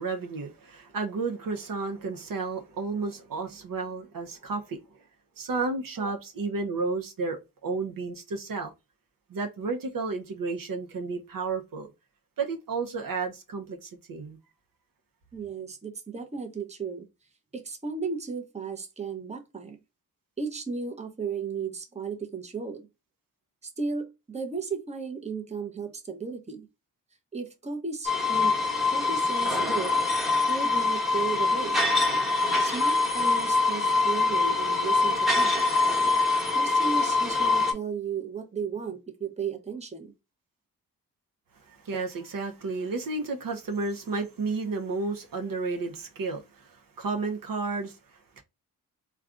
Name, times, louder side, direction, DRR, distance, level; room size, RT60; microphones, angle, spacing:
voice 1, 0.0-4.8 5.4-8.7 9.3-11.9 12.4-14.4 41.6-48.4, right 4 dB, 55° right, 0.8 m, -32 dB
voice 2, 15.3-17.1 17.5-19.8 20.4-22.9 23.6-26.7 27.3-28.6 28.9-29.9 30.5-31.9 32.6-35.7 36.5-40.1, right 5 dB, 15° right, 0.8 m, -35 dB
sound 1, 28.1-37.7, left 3 dB, ahead, 1.2 m, -24 dB
3.3 x 2.3 x 2.5 m
supercardioid pair, 45°, 39 cm